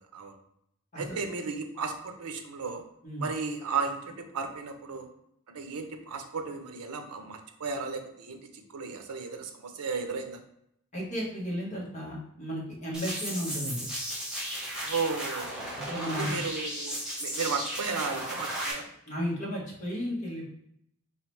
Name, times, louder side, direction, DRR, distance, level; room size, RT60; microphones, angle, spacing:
voice 1, 1.0-2.8 3.2-5.1 5.5-10.4 14.8-15.6 16.2-18.8, right 4 dB, 85° right, 6 dB, 0.6 m, -34 dB
voice 2, 10.9-13.9 15.9-16.3 19.1-20.4, equal, 35° left, -5 dB, 1.2 m, -34 dB
sound 1, 12.9-18.7, right 1 dB, 5° right, 1.0 m, -35 dB
3.8 x 3.1 x 3.1 m, 0.75 s
head